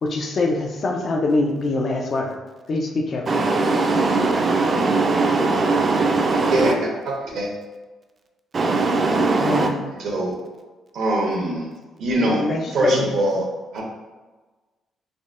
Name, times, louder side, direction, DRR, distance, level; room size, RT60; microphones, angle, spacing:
voice 1, 0.0-2.4 2.7-3.4 9.4-9.8 12.1-13.2, left 2 dB, 50° left, 0.4 m, -24 dB
voice 2, 3.3-6.7 8.5-9.7, right 3 dB, 40° right, 0.4 m, -20 dB
voice 3, 6.5-7.5 10.0-10.4 10.9-11.7 12.0-12.4 12.7-13.5 13.7-13.8, right 1 dB, 75° right, 0.8 m, -22 dB
3.5 x 2.1 x 2.5 m
cardioid pair, 90°, 0 cm